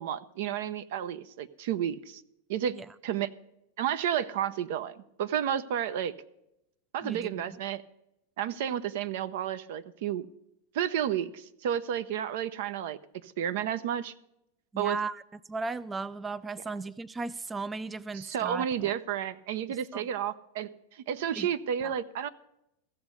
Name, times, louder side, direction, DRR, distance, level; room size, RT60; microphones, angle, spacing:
voice 1, 0.0-2.2 2.5-2.8 3.0-3.3 3.8-6.1 6.9-7.8 8.4-10.3 10.7-14.1 14.8-15.0 18.1-22.3, right 9 dB, 70° right, 0.6 m, -31 dB
voice 2, 7.0-7.4 14.7-15.2 15.5-18.7 19.7-20.0 21.4-21.5 21.8-21.9, right 3 dB, 15° right, 0.3 m, -36 dB
15.0 x 7.1 x 6.5 m
hypercardioid pair, 115°, 0 cm